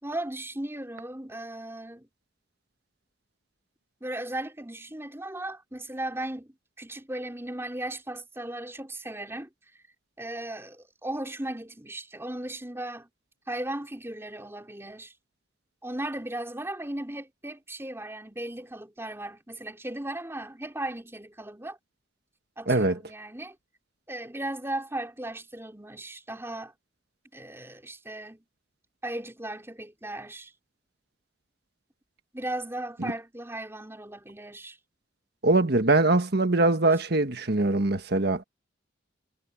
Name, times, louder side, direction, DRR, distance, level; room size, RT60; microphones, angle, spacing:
voice 1, 0.0-2.1 4.0-9.5 10.2-13.1 13.5-15.1 15.8-21.8 22.6-23.6 24.1-26.7 27.3-28.4 29.0-30.5 32.3-34.8 36.9-37.0, right 1 dB, 15° right, 4.2 m, -36 dB
voice 2, 22.7-23.0 33.0-33.1 35.4-38.4, right 2 dB, 55° right, 1.5 m, -22 dB
head